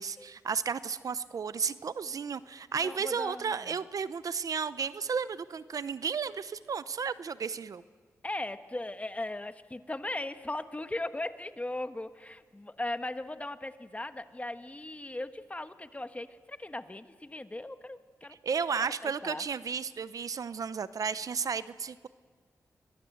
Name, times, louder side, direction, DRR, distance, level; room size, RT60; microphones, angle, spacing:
voice 1, 0.0-7.8 18.4-22.1, right 6 dB, 70° right, 15 dB, 0.7 m, -33 dB
voice 2, 2.8-3.8 8.2-18.4 18.7-19.4, left 2 dB, 20° left, 10 dB, 1.3 m, -38 dB
25.0 x 21.5 x 7.9 m, 1.6 s
cardioid pair, 55°, 6 cm